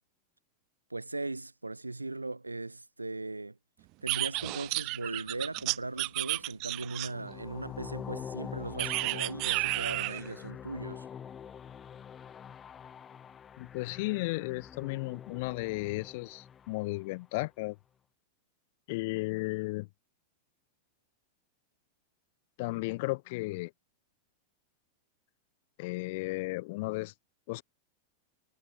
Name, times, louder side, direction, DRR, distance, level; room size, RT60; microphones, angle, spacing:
voice 1, 0.9-3.6 4.0-11.1, right 2 dB, 80° right, 2.9 m, -38 dB
sound 1, 4.1-7.3 8.8-10.3, right 26 dB, 40° right, 3.6 m, -32 dB
sound 2, 7.0-17.1, left 8 dB, 25° left, 3.1 m, -45 dB
voice 2, 13.6-17.8 18.9-19.9 22.6-23.7 25.8-27.1 27.5-27.6, left 23 dB, 50° left, 3.8 m, -34 dB
figure-of-eight pair, 90°, 0 cm